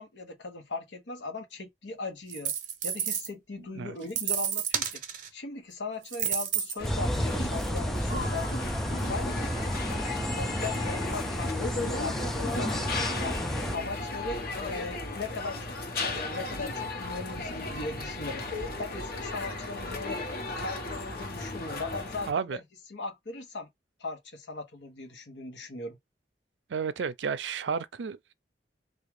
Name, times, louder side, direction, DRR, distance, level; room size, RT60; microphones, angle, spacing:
voice 1, 0.0-2.5 2.8-5.0 5.3-8.6 9.1-9.5 10.4-13.4 13.7-18.4 18.8-20.2 20.5-22.6 22.9-23.7 24.0-26.0, left 3 dB, 85° left, 1.0 m, -38 dB
sound 1, 2.3-3.3 4.1-5.3 6.0-6.8 7.6-7.7, right 9 dB, 45° right, 0.7 m, -30 dB
sound 2, 6.8-22.3, left 2 dB, 55° left, 1.0 m, -35 dB
sound 3, 6.8-13.8, equal, ahead, 0.3 m, -31 dB
voice 2, 22.3-22.6 26.7-28.3, right 6 dB, 80° right, 0.4 m, -32 dB
3.5 x 2.4 x 3.1 m
head